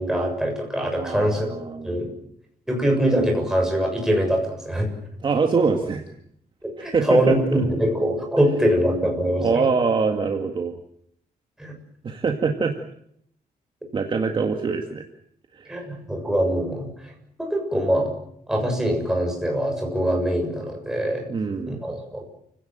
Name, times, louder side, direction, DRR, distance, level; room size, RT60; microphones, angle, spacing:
voice 1, 0.0-1.5 1.8-2.1 2.7-4.9 6.6-9.6 11.6-11.8 15.7-17.1 17.4-18.2 18.5-21.3 21.7-22.3, equal, 5° right, 1 dB, 7.0 m, -23 dB
voice 2, 1.0-2.1 5.2-6.0 6.8-7.4 9.4-10.8 12.0-12.7 13.9-15.0 15.5-15.9 21.3-21.8, right 5 dB, 30° right, 4 dB, 2.0 m, -24 dB
29.5 x 17.0 x 9.1 m, 0.71 s
wide cardioid pair, 180°, 16 cm